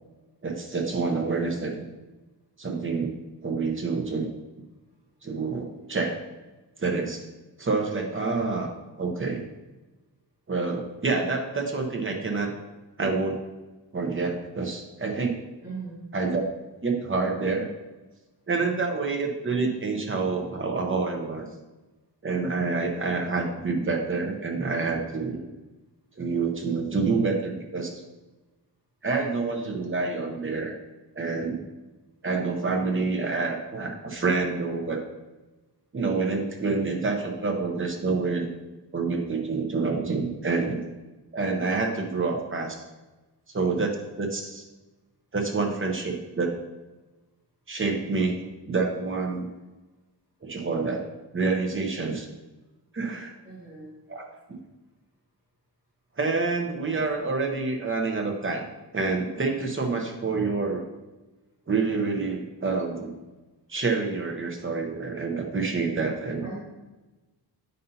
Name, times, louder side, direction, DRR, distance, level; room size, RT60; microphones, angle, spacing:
voice 1, 0.4-1.8 2.6-3.2 3.4-4.3 5.2-6.2 6.8-7.3 7.6-8.7 9.0-9.4 10.5-12.5 13.0-13.4 13.9-15.4 16.1-16.4 16.8-17.7 18.5-21.5 22.2-25.4 26.2-28.0 29.0-30.8 31.1-31.6 32.2-35.0 35.9-38.5 38.9-40.8 41.3-42.8 43.5-44.6 45.3-46.5 47.7-48.4 48.7-49.5 50.4-51.0 51.3-52.2 52.9-53.3 54.1-54.6 56.2-58.6 58.9-60.8 61.7-63.1 63.7-66.4, right 4 dB, 30° right, 2 dB, 0.9 m, -27 dB
voice 2, 15.6-16.0 53.4-53.9 66.4-66.6, right 3 dB, 10° right, -10 dB, 2.1 m, -38 dB
9.2 x 5.5 x 2.8 m, 1.1 s
wide cardioid pair, 165°, 43 cm